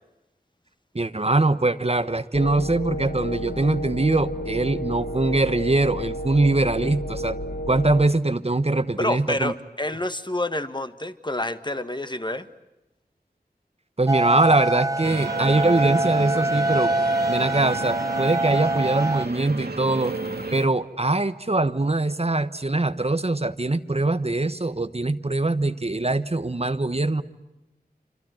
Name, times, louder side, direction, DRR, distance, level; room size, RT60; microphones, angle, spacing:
voice 1, 0.9-7.4 7.7-9.5 14.0-16.9 17.3-20.1 20.5-27.2, right 2 dB, 40° right, 12 dB, 1.1 m, -22 dB
sound 1, 2.3-8.1, equal, 60° left, 1.4 m, -31 dB
voice 2, 9.0-12.5, left 1 dB, 30° left, 10 dB, 1.6 m, -28 dB
sound 2, 14.1-19.3, right 2 dB, 20° right, 0.9 m, -24 dB
sound 3, 15.0-20.7, right 3 dB, 75° right, 2.3 m, -32 dB
26.5 x 26.5 x 7.7 m, 0.99 s
wide cardioid pair, 45°, 16 cm